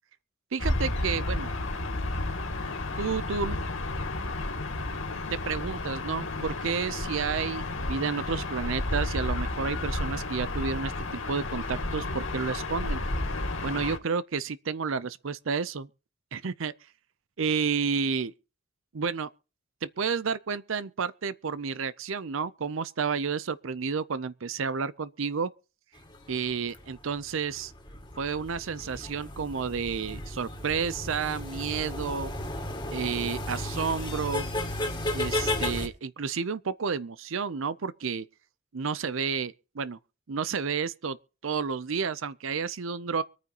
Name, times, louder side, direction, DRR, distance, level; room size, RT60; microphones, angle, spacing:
voice 1, 0.5-1.5 3.0-3.6 5.3-13.0 13.6-15.9 16.3-16.7 17.4-18.3 18.9-19.3 19.8-25.5 26.3-27.7 28.2-32.3 32.9-34.5 35.1-38.3 38.7-40.0 40.3-41.2 41.4-43.2, right 5 dB, 65° right, 0.6 m, -31 dB
Gull seagull / Ocean, 0.6-14.0, left 2 dB, 65° left, 2.4 m, -32 dB
sound 1, 26.0-35.9, left 1 dB, 20° left, 2.1 m, -34 dB
24.5 x 9.4 x 2.9 m
head